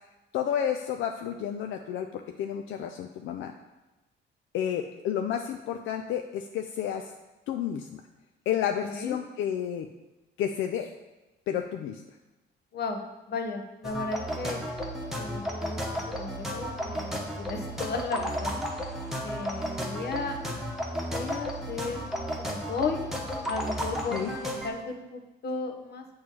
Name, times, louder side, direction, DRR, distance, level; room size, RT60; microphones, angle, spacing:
voice 1, 0.3-3.5 4.5-7.1 7.5-8.0 8.5-9.9 10.4-10.9 11.5-12.0 24.1-24.3, left 9 dB, 80° left, 5 dB, 0.4 m, -31 dB
voice 2, 8.8-9.2 12.7-14.6 15.1-18.6 19.2-20.4 21.0-22.1 22.4-23.0 23.5-26.0, left 4 dB, 55° left, 4 dB, 1.0 m, -35 dB
sound 1, 13.8-24.7, equal, ahead, 1.1 m, -33 dB
7.3 x 3.1 x 6.1 m, 1.1 s
cardioid pair, 90°, 20 cm